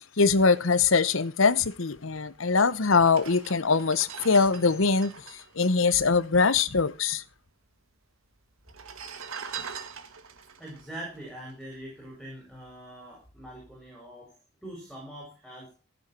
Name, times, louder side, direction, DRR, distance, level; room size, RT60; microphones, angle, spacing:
voice 1, 0.2-5.1 5.6-7.2, left 4 dB, 75° left, 0.9 m, -22 dB
sound 1, 2.3-2.4 3.0-6.7 6.9-7.0 7.2-7.9 8.6-12.1 12.5-12.7, right 6 dB, 90° right, 1.7 m, -43 dB
voice 2, 10.6-15.7, right 1 dB, ahead, 5.8 m, -43 dB
15.0 x 8.1 x 6.0 m
head